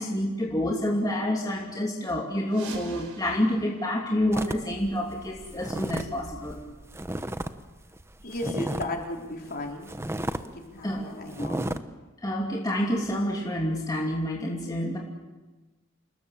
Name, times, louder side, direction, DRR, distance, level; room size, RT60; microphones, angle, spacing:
voice 1, 0.0-6.6 10.8-11.6 12.2-15.0, left 1 dB, 15° left, -2 dB, 2.8 m, -28 dB
sound 1, 2.4-5.1, right 4 dB, 70° right, 4.8 m, -46 dB
sound 2, 4.3-7.5 7.8-9.0 9.4-9.5 9.9-10.5 10.8-11.0 11.3-11.8, right 1 dB, 10° right, 0.9 m, -33 dB
voice 2, 8.2-9.9 10.4-11.6, left 2 dB, 45° left, 1 dB, 4.0 m, -35 dB
28.5 x 20.0 x 7.3 m, 1.2 s
head